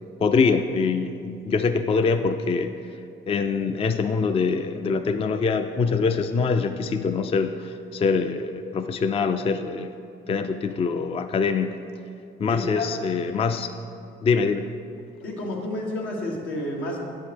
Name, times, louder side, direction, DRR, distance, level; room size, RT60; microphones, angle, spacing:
voice 1, 0.2-2.8 3.3-9.9 10.3-11.8 12.4-13.7 14.2-14.7, left 5 dB, 30° left, 8 dB, 0.3 m, -24 dB
voice 2, 12.5-12.9 15.2-17.0, left 1 dB, 85° left, -2 dB, 1.4 m, -30 dB
8.1 x 5.3 x 5.1 m, 2.6 s
cardioid pair, 90°, 20 cm